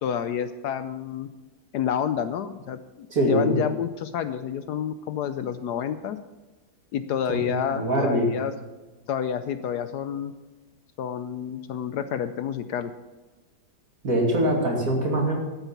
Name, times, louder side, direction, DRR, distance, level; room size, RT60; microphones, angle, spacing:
voice 1, 0.0-1.3 1.7-6.2 6.9-8.5 9.1-10.3 11.0-12.9, left 8 dB, 70° left, 11 dB, 1.1 m, -29 dB
voice 2, 3.1-3.6 7.3-8.3 14.0-15.4, right 1 dB, 50° right, -1 dB, 2.8 m, -23 dB
12.0 x 8.0 x 5.9 m, 1.2 s
omnidirectional pair, 2.0 m